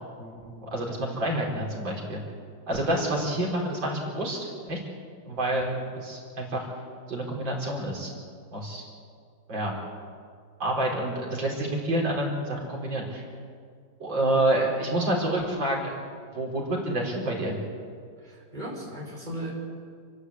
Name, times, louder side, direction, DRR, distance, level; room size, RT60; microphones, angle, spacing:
voice 1, 0.2-2.2 2.7-4.8 5.3-6.7 7.1-8.1 8.5-8.8 9.5-9.7 10.6-13.2 14.0-15.9 16.3-17.6, right 1 dB, 75° right, -3 dB, 5.1 m, -28 dB
voice 2, 18.2-19.5, right 1 dB, 20° right, -3 dB, 5.3 m, -37 dB
30.0 x 11.5 x 8.3 m, 2.2 s
omnidirectional pair, 2.0 m